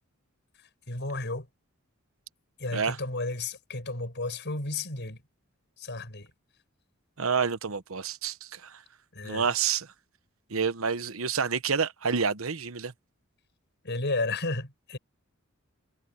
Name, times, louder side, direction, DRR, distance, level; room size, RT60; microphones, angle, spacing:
voice 1, 0.9-1.5 2.6-5.2 5.8-6.3 9.1-9.5 13.8-15.0, left 2 dB, 55° left, 7.0 m, -32 dB
voice 2, 7.2-8.8 9.2-9.9 10.5-12.9, right 6 dB, 75° right, 1.1 m, -28 dB
head